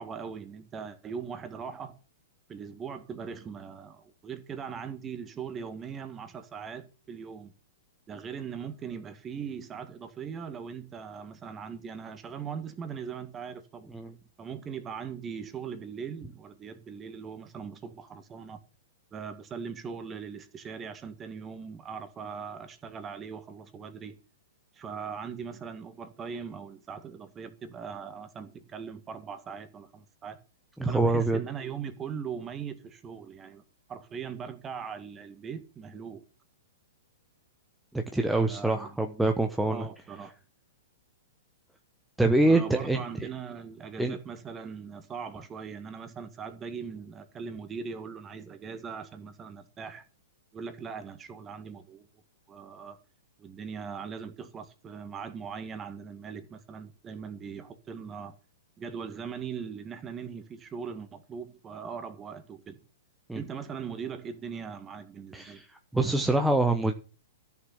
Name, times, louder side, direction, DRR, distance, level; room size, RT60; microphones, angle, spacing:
voice 1, 0.0-2.0 2.5-7.5 8.1-13.9 14.4-18.6 19.1-24.2 24.7-30.4 30.9-33.6 33.9-36.2 38.5-39.0 39.6-40.3 42.4-50.1 50.5-52.1 52.5-53.0 53.4-58.4 58.8-62.8 63.3-65.6, right 6 dB, 20° right, 1.9 m, -40 dB
voice 2, 30.8-31.4 37.9-39.8 42.2-43.0 44.0-44.2 63.3-63.4 65.3-65.6 65.9-66.9, right 2 dB, 5° right, 1.1 m, -25 dB
14.0 x 6.9 x 7.2 m
figure-of-eight pair, 110°, 0 cm